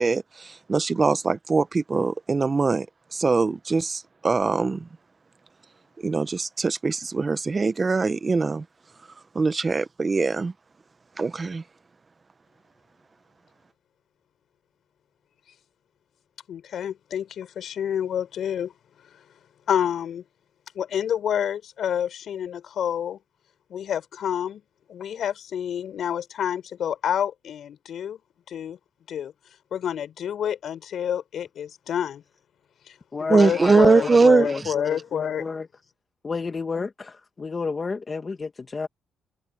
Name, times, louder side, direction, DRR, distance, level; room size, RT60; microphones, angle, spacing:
voice 1, 0.0-2.9 3.1-4.9 6.0-8.6 9.3-10.5 11.2-11.6 33.3-34.7, right 4 dB, 30° right, 0.8 m, -22 dB
voice 2, 16.5-18.7 19.7-20.2 20.7-23.2 23.7-24.6 24.9-28.2 28.5-28.8 29.1-29.3 29.7-32.2 32.9-35.4, left 9 dB, 65° left, 5.8 m, -28 dB
voice 3, 33.1-35.7 36.2-38.9, left 4 dB, 30° left, 1.3 m, -31 dB
cardioid pair, 90°, 0 cm